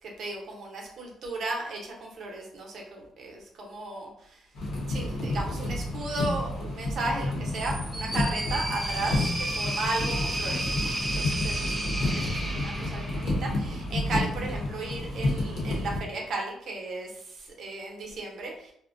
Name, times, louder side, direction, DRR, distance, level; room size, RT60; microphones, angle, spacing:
voice 1, 0.0-4.5 4.9-10.8 11.1-18.7, right 2 dB, 65° right, -1 dB, 0.7 m, -35 dB
sound 1, 4.5-16.0, left 1 dB, 75° left, 0.8 m, -30 dB
sound 2, 7.5-13.7, right 1 dB, 15° right, 0.5 m, -33 dB
2.5 x 2.1 x 2.5 m, 0.68 s
cardioid pair, 90°, 0 cm